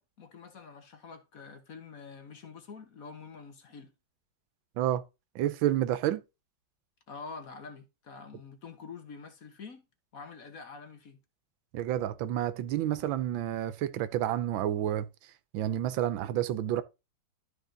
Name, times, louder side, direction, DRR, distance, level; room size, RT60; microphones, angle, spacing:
voice 1, 0.0-3.9 7.1-9.8 10.1-11.2, left 5 dB, 50° left, 1.5 m, -46 dB
voice 2, 5.3-6.2 11.7-15.1 15.5-16.8, right 12 dB, 85° right, 1.5 m, -29 dB
12.0 x 4.3 x 3.8 m
omnidirectional pair, 2.1 m